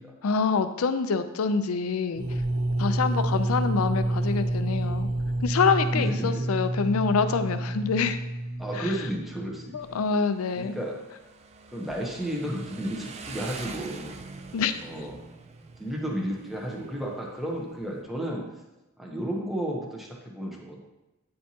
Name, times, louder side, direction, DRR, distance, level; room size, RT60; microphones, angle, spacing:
voice 1, 0.2-2.2 2.8-5.1 5.4-8.2 8.8-8.9 9.7-10.8 14.5-14.8, left 5 dB, 80° left, 10 dB, 0.5 m, -26 dB
sound 1, 2.1-9.9, right 1 dB, 65° right, 0.8 m, -29 dB
voice 2, 5.9-6.5 8.6-10.0 10.6-11.0 11.7-14.1 14.8-15.1 15.7-18.5 19.0-20.9, right 1 dB, ahead, -2 dB, 0.9 m, -33 dB
Motorcycle, 9.8-18.0, right 4 dB, 30° right, 0.3 m, -45 dB
9.3 x 4.4 x 2.8 m, 1.0 s
head